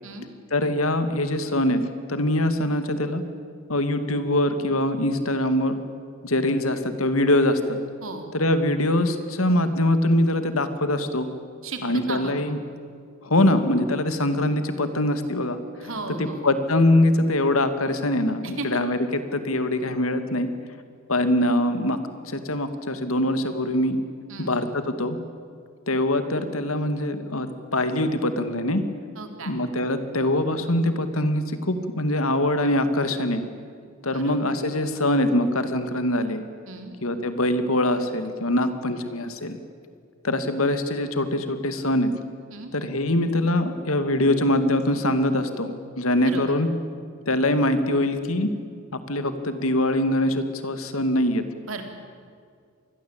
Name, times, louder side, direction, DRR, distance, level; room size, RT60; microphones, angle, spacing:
voice 1, 0.5-1.8 2.1-3.2 3.7-5.8 6.2-7.8 8.3-11.3 11.8-12.6 13.2-15.6 16.2-19.0 19.3-20.5 21.1-22.0 22.3-24.0 24.4-25.2 25.9-28.8 29.5-33.4 34.0-36.4 37.0-39.6 40.2-42.1 42.7-46.7 47.3-48.5 49.1-51.4, left 1 dB, 75° left, 9 dB, 2.3 m, -23 dB
voice 2, 12.1-12.6 15.8-16.5 18.4-18.7 24.3-24.6 29.2-29.5 34.1-34.5 36.7-36.9 42.5-42.7 46.2-46.6 51.6-51.8, right 3 dB, 70° right, 5 dB, 3.8 m, -35 dB
27.0 x 20.5 x 8.8 m, 2.2 s
head